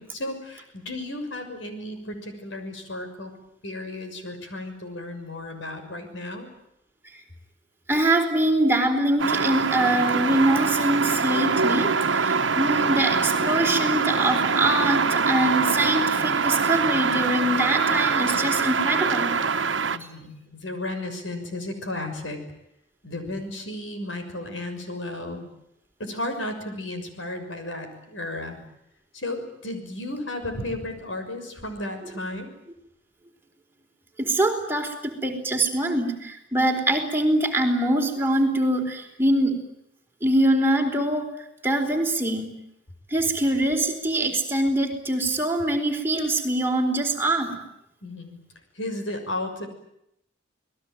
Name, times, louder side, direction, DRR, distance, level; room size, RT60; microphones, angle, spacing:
voice 1, 0.0-3.3 3.6-6.5 19.9-22.4 23.0-25.4 26.0-28.6 29.1-32.5 48.0-48.4 48.8-49.7, left 1 dB, 80° left, 6 dB, 6.4 m, -34 dB
voice 2, 7.9-19.4 34.2-39.6 40.2-41.3 41.6-42.5 43.1-47.6, right 1 dB, 10° right, 2 dB, 4.2 m, -23 dB
sound 1, 9.2-20.0, right 5 dB, 75° right, 1.3 m, -24 dB
28.0 x 20.0 x 9.3 m, 0.79 s
head